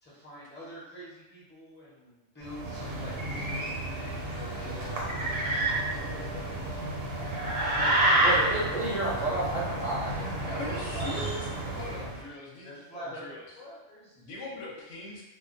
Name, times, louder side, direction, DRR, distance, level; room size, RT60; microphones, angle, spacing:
voice 1, 0.0-6.8 7.7-8.4 10.4-11.5 11.9-12.3 12.6-14.1 14.5-14.8, equal, 10° left, -9 dB, 0.5 m, -45 dB
sound 1, 2.4-12.2, right 1 dB, 70° right, 0.9 m, -30 dB
voice 2, 8.2-10.6, right 2 dB, 50° right, -9 dB, 0.5 m, -31 dB
voice 3, 10.6-11.5 11.7-13.5 14.1-15.2, left 1 dB, 65° left, -3 dB, 0.9 m, -41 dB
2.4 x 2.1 x 2.5 m, 1.0 s
omnidirectional pair, 1.4 m